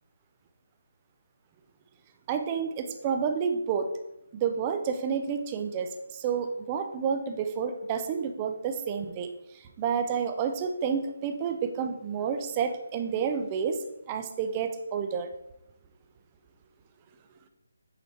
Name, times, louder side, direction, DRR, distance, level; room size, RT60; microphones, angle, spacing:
voice 1, 2.3-3.9 4.3-9.3 9.8-13.8 14.1-15.3, right 6 dB, 15° right, 6 dB, 0.3 m, -30 dB
8.2 x 3.3 x 4.1 m, 0.84 s
hypercardioid pair, 180°, 0 cm